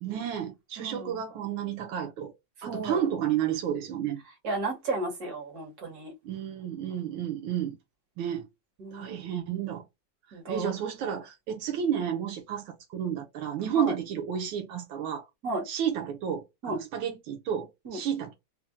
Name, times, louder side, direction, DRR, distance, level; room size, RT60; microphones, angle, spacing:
voice 1, 0.0-2.3 2.6-4.2 6.2-7.8 8.2-8.5 8.9-9.8 10.3-15.2 15.7-18.3, right 9 dB, 85° right, 1.6 m, -31 dB
voice 2, 0.8-1.2 2.6-3.0 4.4-6.1 8.8-9.2 10.3-10.7 13.8-13.9 15.4-15.7 16.6-16.8 17.9-18.0, right 2 dB, 50° right, 1.9 m, -33 dB
4.2 x 2.1 x 3.6 m
omnidirectional pair, 2.1 m